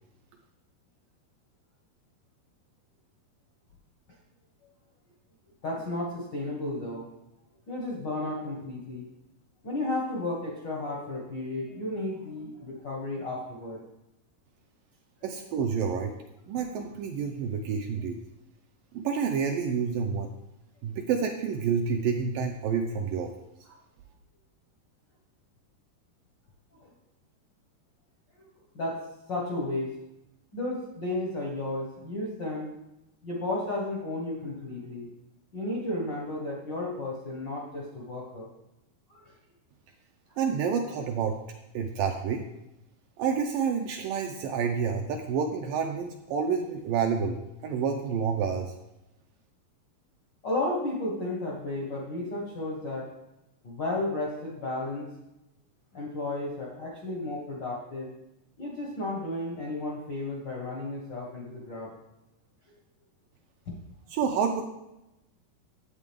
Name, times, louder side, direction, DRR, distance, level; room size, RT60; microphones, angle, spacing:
voice 1, 5.6-7.0 7.7-9.1 9.6-13.8 26.8-26.9 28.7-30.0 30.5-32.8 33.2-35.1 35.5-38.5 39.1-39.2 50.4-53.1 53.6-55.1 55.9-58.1 58.6-61.9, left 2 dB, 80° left, -3 dB, 0.9 m, -33 dB
voice 2, 15.2-16.1 16.5-18.2 18.9-20.3 20.8-23.3 40.4-41.4 41.7-42.5 43.2-47.4 47.6-48.7 64.1-64.6, right 6 dB, 80° right, 3 dB, 2.1 m, -28 dB
9.8 x 8.4 x 3.6 m, 0.92 s
omnidirectional pair, 4.5 m